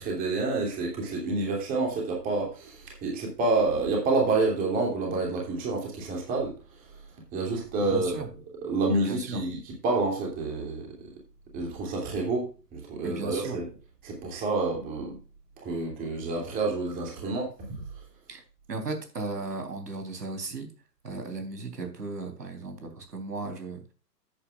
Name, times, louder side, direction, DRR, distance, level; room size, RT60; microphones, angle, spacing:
voice 1, 0.0-6.6 7.3-8.3 8.6-10.9 11.5-13.7 14.0-15.1 15.6-17.7, right 3 dB, 15° right, 0 dB, 2.8 m, -28 dB
voice 2, 7.9-8.3 8.9-9.4 13.0-13.6 18.3-18.4 18.7-20.7 21.0-23.8, right 3 dB, 70° right, 5 dB, 3.8 m, -35 dB
13.5 x 8.7 x 2.4 m, 0.33 s
figure-of-eight pair, 135°, 50 cm